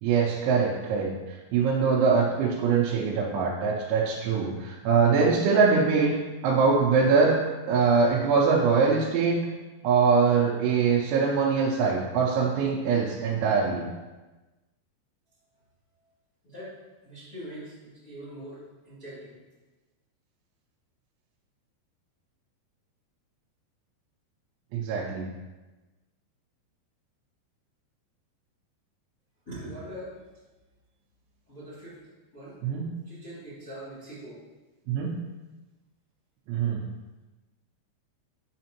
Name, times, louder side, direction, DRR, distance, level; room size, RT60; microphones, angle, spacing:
voice 1, 0.0-6.2 6.4-7.4 7.7-9.4 9.8-13.9 24.7-25.3 32.6-32.9 34.9-35.1 36.5-36.8, right 5 dB, 80° right, -5 dB, 3.1 m, -23 dB
voice 2, 17.0-19.4 29.5-30.2 31.5-32.0 32.3-32.6 33.1-34.4, right 1 dB, 30° left, -10 dB, 2.1 m, -42 dB
9.2 x 6.1 x 2.9 m, 1.2 s
omnidirectional pair, 5.3 m